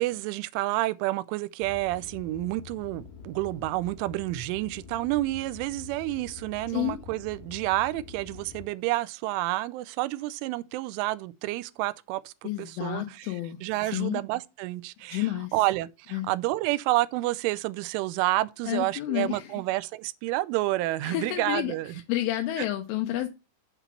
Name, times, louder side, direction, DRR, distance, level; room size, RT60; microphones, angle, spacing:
voice 1, 0.0-13.4 13.6-22.0 22.6-22.7, right 18 dB, 85° right, 3.0 m, -29 dB
sound 1, 1.6-8.6, left 6 dB, 70° left, 3.6 m, -46 dB
voice 2, 12.4-13.6 13.8-14.2 15.1-15.5 16.1-16.3 18.7-19.5 21.0-23.3, left 14 dB, 90° left, 3.4 m, -30 dB
7.1 x 6.0 x 5.7 m
omnidirectional pair, 5.5 m